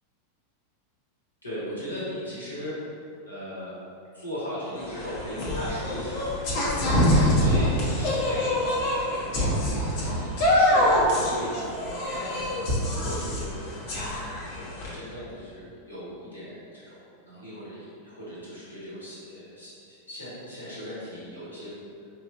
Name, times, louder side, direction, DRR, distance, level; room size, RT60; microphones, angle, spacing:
voice 1, 1.4-2.8 3.3-3.7 4.1-6.3 6.6-9.3 9.9-11.5 11.8-12.6 12.9-13.5 14.9-17.0 17.3-21.7, equal, 80° left, -9 dB, 1.4 m, -38 dB
sound 1, 4.8-14.9, left 1 dB, 55° left, 0.9 m, -25 dB
4.9 x 2.9 x 2.6 m, 2.5 s
figure-of-eight pair, 90°, 0 cm